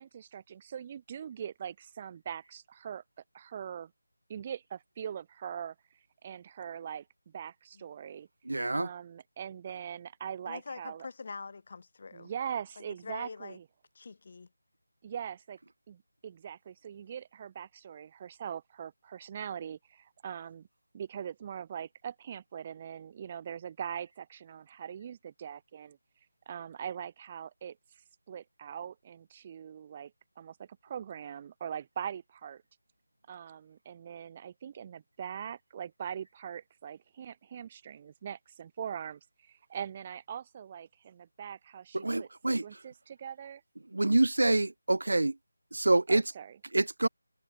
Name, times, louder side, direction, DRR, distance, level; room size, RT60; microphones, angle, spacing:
voice 1, 0.0-3.0 3.3-3.9 4.3-5.7 6.2-7.0 7.3-8.3 8.7-11.1 12.1-13.6 15.0-15.6 15.9-20.7 20.9-26.0 26.4-27.8 28.3-30.1 30.4-32.6 33.3-43.6 46.1-46.6, right 8 dB, 15° right, 1.6 m, -42 dB
voice 2, 8.5-8.9 42.0-42.6 43.9-45.3 45.7-46.2 46.7-47.1, right 2 dB, 75° right, 0.7 m, -26 dB
voice 3, 10.5-12.3 12.8-13.6 14.0-14.5, left 4 dB, 30° left, 1.9 m, -44 dB
figure-of-eight pair, 180°, 0 cm